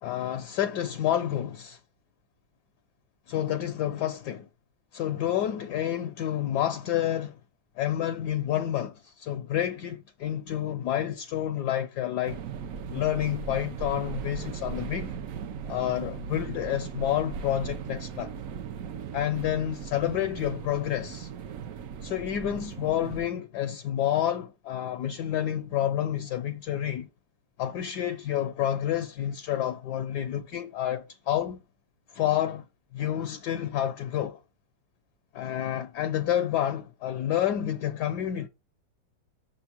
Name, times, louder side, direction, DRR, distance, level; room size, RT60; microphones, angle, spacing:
voice 1, 0.0-1.8 3.3-4.5 4.9-7.4 7.8-12.4 12.9-15.1 15.7-18.3 19.1-21.3 22.0-27.1 27.6-31.6 32.1-32.6 32.9-34.4 35.3-38.5, left 11 dB, 70° left, 1.1 m, -29 dB
sound 1, 12.2-23.3, right 6 dB, 70° right, 0.7 m, -38 dB
6.2 x 3.6 x 6.0 m
omnidirectional pair, 2.1 m